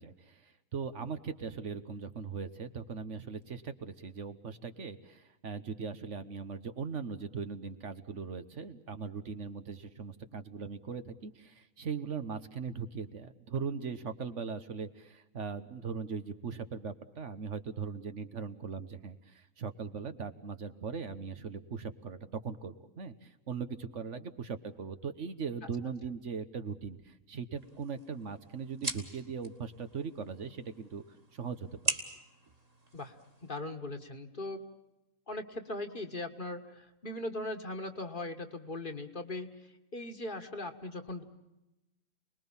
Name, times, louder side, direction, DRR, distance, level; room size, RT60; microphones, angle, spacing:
voice 1, 0.0-31.0 31.3-32.0, right 5 dB, 65° right, 10 dB, 1.5 m, -40 dB
sound 1, 27.6-33.6, right 1 dB, 30° right, 2.2 m, -41 dB
voice 2, 33.4-34.6 35.3-39.7 39.9-41.2, left 2 dB, 40° left, 6 dB, 1.8 m, -39 dB
29.0 x 20.5 x 7.2 m, 0.96 s
omnidirectional pair, 1.4 m